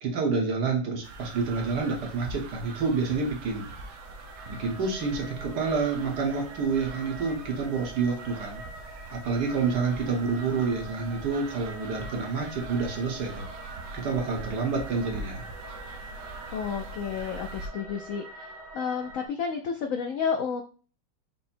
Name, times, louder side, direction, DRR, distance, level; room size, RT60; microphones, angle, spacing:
voice 1, 0.0-3.7 4.5-13.5 13.9-15.4, right 4 dB, 65° right, 0 dB, 1.6 m, -28 dB
sound 1, 1.0-17.7, right 3 dB, 90° right, 1.5 m, -43 dB
sound 2, 1.7-19.3, right 1 dB, 50° right, 1.0 m, -46 dB
voice 2, 16.5-20.6, left 6 dB, 80° left, 4 dB, 0.7 m, -31 dB
5.5 x 2.1 x 4.3 m, 0.38 s
omnidirectional pair, 2.0 m